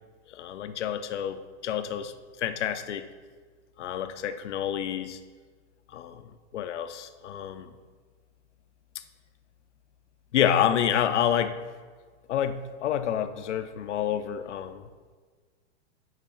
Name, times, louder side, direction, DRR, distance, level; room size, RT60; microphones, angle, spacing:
voice 1, 0.3-2.1 2.4-3.0 3.8-5.2 5.9-6.2 6.5-7.7 10.3-11.6 12.3-14.8, left 9 dB, 80° left, 10 dB, 0.7 m, -28 dB
9.1 x 3.3 x 6.4 m, 1.5 s
hypercardioid pair, 135°, 34 cm